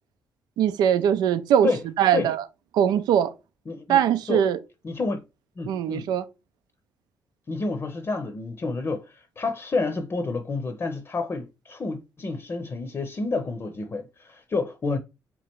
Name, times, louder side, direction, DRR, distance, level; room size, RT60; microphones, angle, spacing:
voice 1, 0.6-1.7 2.0-2.4 2.7-3.3 3.9-4.6 5.7-6.2, right 9 dB, 85° right, 0.5 m, -21 dB
voice 2, 3.7-4.0 4.3-4.4 4.8-5.2 5.6-6.1 7.5-15.0, left 3 dB, 35° left, 0.7 m, -29 dB
3.7 x 3.1 x 4.4 m
cardioid pair, 90°, 7 cm